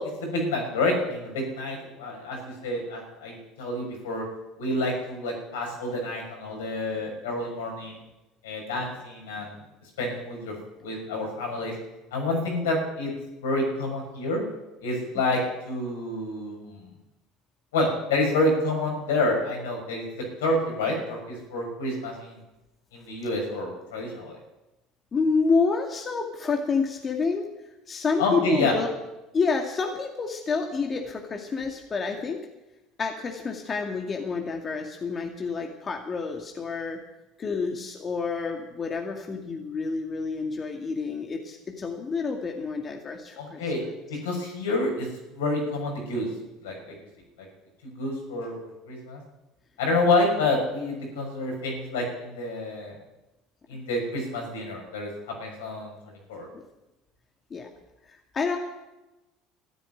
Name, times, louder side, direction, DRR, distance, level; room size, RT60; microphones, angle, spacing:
voice 1, 0.0-4.2 4.6-8.0 8.4-9.6 10.0-10.5 10.8-11.7 12.1-13.1 13.4-14.4 14.8-16.9 17.7-20.0 20.4-22.4 22.9-24.4 28.2-28.7 43.4-43.8 44.1-45.1 45.3-46.3 46.6-47.0 47.4-47.5 48.0-48.5 48.9-49.2 49.8-53.0 53.7-55.9 56.3-56.5, left 2 dB, 85° left, 0 dB, 6.2 m, -28 dB
voice 2, 25.1-27.5 27.9-28.9 29.3-32.4 33.0-37.0 37.4-43.6 56.5-56.6 57.5-57.7 58.1-58.6, left 4 dB, 35° left, 2 dB, 2.3 m, -28 dB
14.0 x 10.0 x 9.3 m, 0.98 s
hypercardioid pair, 75°, 0 cm